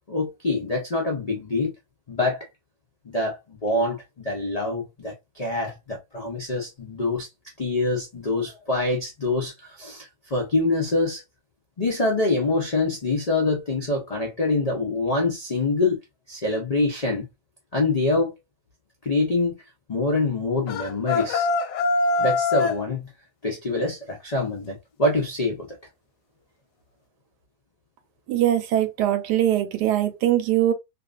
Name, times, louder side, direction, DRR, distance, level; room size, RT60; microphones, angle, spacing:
voice 1, 0.1-1.7 2.1-2.5 3.1-7.3 7.6-11.2 11.8-16.0 16.3-17.3 17.7-18.4 19.0-19.6 19.9-21.5 22.2-23.1 23.4-25.8, left 2 dB, 65° left, 0.4 m, -25 dB
sound 1, 20.7-22.8, left 3 dB, 85° left, 1.1 m, -23 dB
voice 2, 28.3-30.7, right 12 dB, 90° right, 1.2 m, -22 dB
2.7 x 2.4 x 2.3 m
omnidirectional pair, 1.7 m